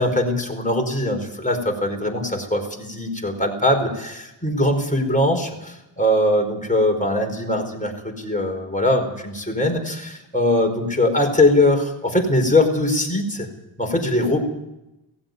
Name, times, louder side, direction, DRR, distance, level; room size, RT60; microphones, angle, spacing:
voice 1, 0.0-13.5 13.8-14.4, left 1 dB, 15° left, 2 dB, 4.9 m, -21 dB
17.5 x 16.0 x 9.5 m, 0.92 s
wide cardioid pair, 55°, 49 cm